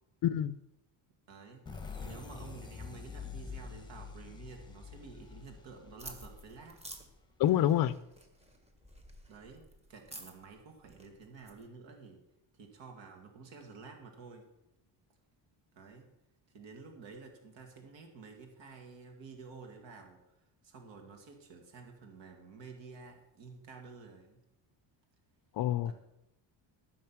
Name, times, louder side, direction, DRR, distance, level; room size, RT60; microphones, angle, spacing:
voice 1, 0.2-0.6 7.4-7.9 25.6-25.9, left 12 dB, 50° left, 14 dB, 0.5 m, -27 dB
voice 2, 1.3-6.8 9.3-12.2 12.5-14.5 15.8-16.1 16.5-20.2 20.6-24.4 25.8-25.9, right 4 dB, 65° right, 3 dB, 2.0 m, -51 dB
sound 1, 1.7-7.2, left 5 dB, 10° left, 0.9 m, -46 dB
sound 2, 6.0-11.7, right 1 dB, 15° right, 1.3 m, -51 dB
14.0 x 6.5 x 6.0 m, 0.89 s
cardioid pair, 165°, 47 cm